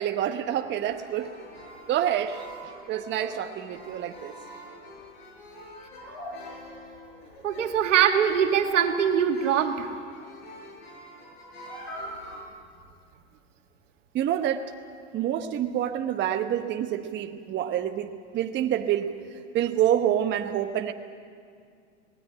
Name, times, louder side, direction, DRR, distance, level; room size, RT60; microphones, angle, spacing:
voice 1, 0.0-1.3 1.9-2.5 2.9-4.3 14.1-14.7 15.1-19.1 19.5-20.9, right 10 dB, 30° right, 6 dB, 0.9 m, -27 dB
sound 1, 0.8-12.4, equal, 60° left, 7.7 m, -44 dB
voice 2, 7.4-9.9, right 8 dB, 80° right, 5 dB, 1.9 m, -22 dB
19.0 x 16.0 x 9.7 m, 2.2 s
hypercardioid pair, 115°, 37 cm